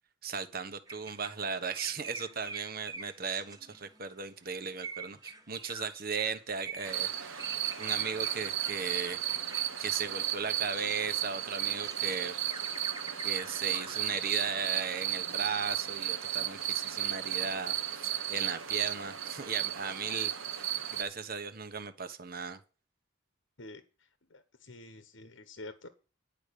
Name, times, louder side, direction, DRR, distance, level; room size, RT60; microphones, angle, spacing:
voice 1, 0.2-7.4 7.8-9.2 9.5-12.4 13.2-22.6, right 5 dB, 50° right, 8 dB, 1.2 m, -37 dB
sound 1, 0.9-4.1 4.7-11.0 11.5-14.1, right 4 dB, 20° right, 1.4 m, -46 dB
sound 2, 6.8-21.0, right 11 dB, 90° right, 1.5 m, -34 dB
voice 2, 24.3-25.9, left 2 dB, 70° left, 9 dB, 1.1 m, -47 dB
11.0 x 5.3 x 8.3 m, 0.35 s
head